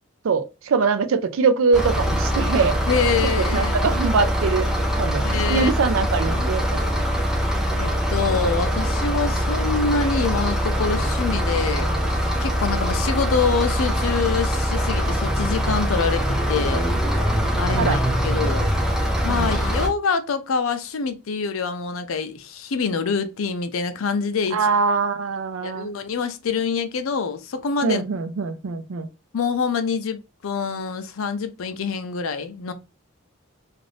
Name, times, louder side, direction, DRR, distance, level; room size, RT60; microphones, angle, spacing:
voice 1, 0.2-2.8 3.5-4.7 5.0-6.8 17.8-18.0 19.3-19.5 24.5-25.9 27.8-29.1, right 4 dB, 75° right, 0.4 m, -22 dB
sound 1, 1.7-19.9, equal, ahead, 0.4 m, -23 dB
voice 2, 2.9-3.7 5.2-5.7 6.2-6.5 7.8-16.9 17.6-18.7 19.2-24.7 25.6-28.0 29.3-32.7, left 5 dB, 75° left, 0.5 m, -26 dB
2.5 x 2.5 x 3.2 m
head